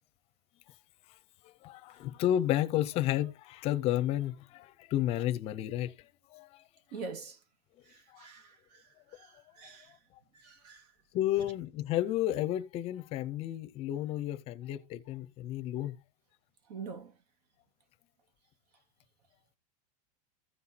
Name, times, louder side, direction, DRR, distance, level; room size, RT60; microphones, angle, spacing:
voice 1, 1.6-5.9 6.3-6.5 8.1-8.3 11.1-15.9, left 13 dB, 30° left, 0.6 m, -31 dB
voice 2, 6.9-7.4 7.9-8.8 9.2-9.9 10.4-10.8 16.7-17.1, right 4 dB, 80° right, 1.9 m, -44 dB
15.5 x 5.7 x 2.8 m
supercardioid pair, 170°, 20 cm